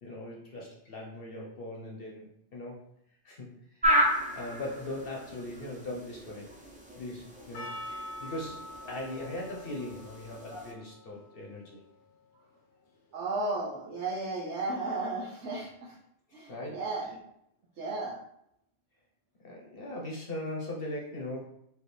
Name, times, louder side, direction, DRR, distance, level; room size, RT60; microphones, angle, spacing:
voice 1, 0.0-2.8 3.2-6.6 6.9-11.8 16.5-16.8 19.4-21.5, left 1 dB, 55° left, -1 dB, 0.9 m, -40 dB
sound 1, 3.8-10.7, equal, 10° right, 0.5 m, -33 dB
Percussion, 7.5-12.5, left 1 dB, 80° left, 1.0 m, -45 dB
voice 2, 13.1-16.0 16.3-17.2 17.8-18.2, right 2 dB, 75° right, -3 dB, 1.0 m, -34 dB
4.6 x 2.6 x 3.3 m, 0.75 s
omnidirectional pair, 1.2 m